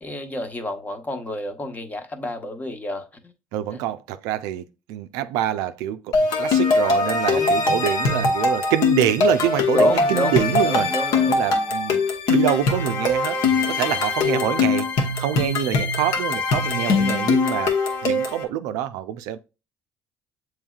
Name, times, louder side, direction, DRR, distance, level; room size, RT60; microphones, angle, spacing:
voice 1, 0.0-3.3 7.3-7.6 9.7-11.4 13.5-13.8, left 1 dB, 25° left, 1.0 m, -30 dB
voice 2, 3.5-10.9 11.3-12.0 12.3-13.4 13.7-14.9 15.2-17.8 18.0-19.4, right 11 dB, 85° right, 0.4 m, -25 dB
sound 1, 6.1-18.4, left 3 dB, 70° left, 1.0 m, -21 dB
7.2 x 3.1 x 2.3 m
supercardioid pair, 80°, 6 cm